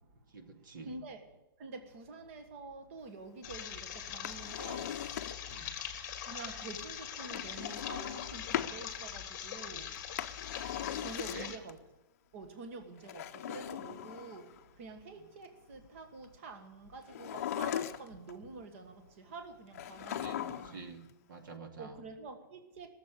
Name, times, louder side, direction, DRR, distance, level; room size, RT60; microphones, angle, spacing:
voice 1, 0.3-1.0 5.5-5.8 11.0-11.5 20.2-22.0, right 4 dB, 65° right, 2.4 m, -48 dB
voice 2, 0.8-1.2 1.6-4.9 6.3-9.9 11.0-11.8 12.3-13.2 13.5-14.4 14.8-19.0 19.3-20.8 21.8-22.9, right 3 dB, 35° right, 1.5 m, -47 dB
sound 1, 3.4-11.6, left 9 dB, 25° left, 1.4 m, -42 dB
Drawer open or close, 4.1-5.6 7.3-8.8 9.9-11.7 13.0-14.6 17.1-18.3 19.7-20.9 21.1-21.2, left 10 dB, 40° left, 0.6 m, -39 dB
18.5 x 7.4 x 9.0 m
hypercardioid pair, 175°, 12 cm